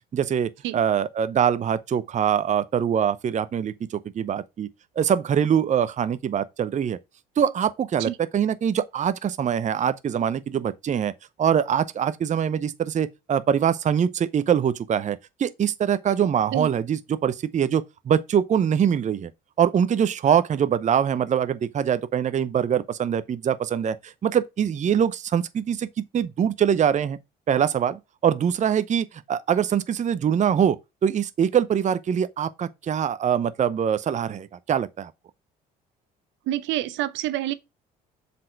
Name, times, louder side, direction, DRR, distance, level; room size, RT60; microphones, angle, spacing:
voice 1, 0.1-4.7 5.0-7.0 7.4-11.1 11.4-19.3 19.6-25.9 26.1-27.2 27.5-30.8 31.0-35.1, right 8 dB, 35° right, 0.6 m, -23 dB
voice 2, 36.5-37.5, right 14 dB, 65° right, 0.8 m, -27 dB
7.4 x 4.3 x 5.1 m
hypercardioid pair, 55°, 21 cm